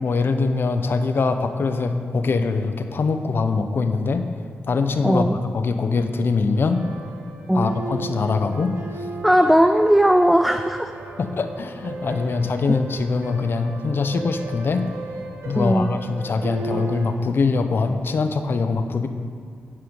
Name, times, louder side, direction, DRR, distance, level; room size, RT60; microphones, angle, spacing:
voice 1, 0.0-4.3 4.7-5.3 5.5-6.8 7.5-9.1 11.2-14.9 15.4-19.1, left 4 dB, 60° left, 8 dB, 0.8 m, -23 dB
voice 2, 5.0-5.4 7.5-7.8 9.2-10.9 15.5-15.9, equal, ahead, 7 dB, 0.4 m, -17 dB
sound 1, 6.7-17.1, right 3 dB, 85° right, 1.4 m, -35 dB
10.5 x 6.8 x 5.3 m, 2.3 s
cardioid pair, 55°, 4 cm